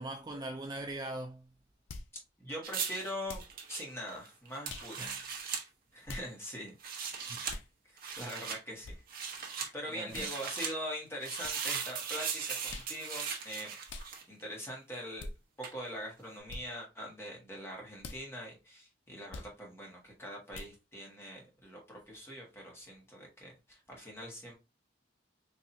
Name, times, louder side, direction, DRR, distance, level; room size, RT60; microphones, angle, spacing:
voice 1, 0.0-1.5 5.0-5.2 7.1-7.5 9.4-9.7 9.9-10.3, right 1 dB, 20° right, 0.3 m, -41 dB
sound 1, 1.9-2.1 3.3-3.6 4.7-4.9 6.1-6.3 7.5-7.7 8.8-9.0 10.1-10.3 11.4-11.6 12.7-12.9 13.9-14.1 15.2-15.3 16.5-16.6 18.0-18.2 19.3-19.5 20.5-20.7, left 2 dB, 80° left, 0.5 m, -44 dB
voice 2, 2.4-4.9 5.9-6.7 7.8-13.7 14.3-15.3 15.6-24.5, equal, 15° left, 1.3 m, -43 dB
sound 2, 2.6-5.6 6.7-7.6 8.0-8.6 9.1-9.7 10.1-10.7 11.2-14.4 15.6-15.8, right 6 dB, 50° right, 0.9 m, -38 dB
4.2 x 2.6 x 2.6 m
head